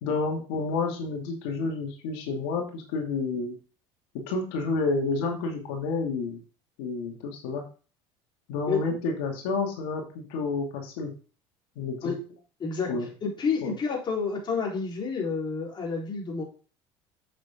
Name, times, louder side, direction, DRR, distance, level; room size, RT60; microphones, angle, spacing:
voice 1, 0.0-3.5 4.3-6.4 6.8-7.6 8.5-11.1 11.8-12.1 12.9-13.1 13.6-13.7, left 3 dB, 80° left, 1 dB, 2.5 m, -30 dB
voice 2, 12.6-16.4, left 5 dB, 35° left, -1 dB, 4.1 m, -29 dB
7.8 x 7.6 x 3.8 m, 0.37 s
supercardioid pair, 100°, 13 cm